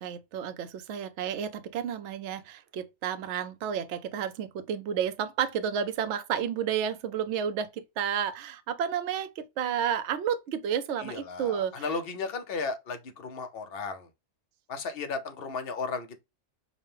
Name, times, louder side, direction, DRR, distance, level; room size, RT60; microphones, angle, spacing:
voice 1, 0.0-11.9, right 8 dB, 65° right, 0.8 m, -31 dB
voice 2, 11.0-14.1 14.7-16.2, left 4 dB, 55° left, 0.9 m, -35 dB
5.1 x 2.1 x 3.2 m
omnidirectional pair, 1.4 m